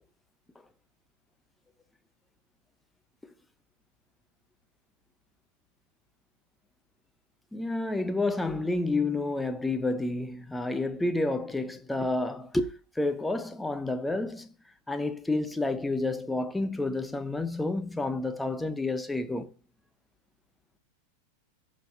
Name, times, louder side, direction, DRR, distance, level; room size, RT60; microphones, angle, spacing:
voice 1, 7.5-14.5 14.9-19.5, left 2 dB, 5° left, 0.7 m, -30 dB
15.5 x 5.3 x 2.8 m
figure-of-eight pair, 90°, 0 cm